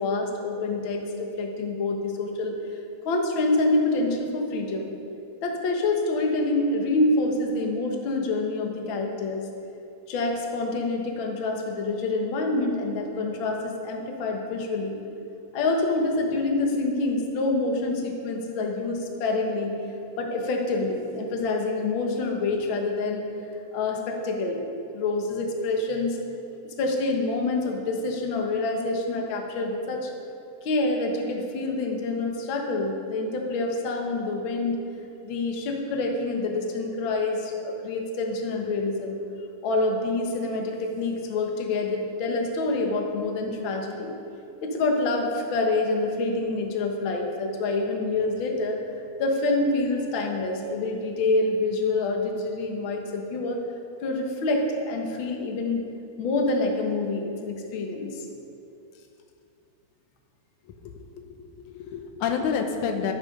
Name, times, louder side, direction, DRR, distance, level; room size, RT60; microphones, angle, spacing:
voice 1, 0.0-2.8 3.0-4.9 5.4-9.5 10.1-15.0 15.5-19.7 20.2-23.2 23.7-24.7 24.9-26.2 26.6-30.1 30.6-34.8 35.2-39.2 39.6-44.1 44.6-48.8 49.2-53.6 54.0-55.8 56.2-58.3, left 2 dB, 50° left, 1 dB, 1.8 m, -27 dB
voice 2, 60.8-63.1, left 6 dB, 85° left, 4 dB, 2.4 m, -29 dB
11.5 x 10.5 x 5.3 m, 2.7 s
omnidirectional pair, 3.4 m